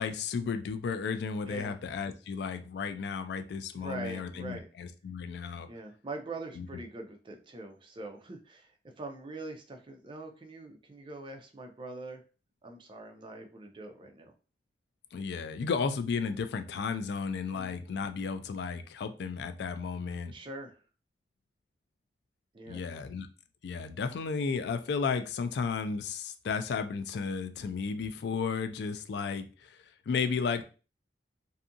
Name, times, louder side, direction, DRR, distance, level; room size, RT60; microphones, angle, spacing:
voice 1, 0.0-5.7 6.6-6.7 15.1-20.3 22.7-23.3 23.6-30.6, left 5 dB, 65° left, 8 dB, 0.3 m, -33 dB
voice 2, 3.8-4.7 5.7-12.2 12.6-14.3 17.5-17.7 20.3-20.8 22.5-22.8, right 2 dB, 30° right, 4 dB, 0.4 m, -43 dB
2.6 x 2.4 x 2.6 m, 0.35 s
head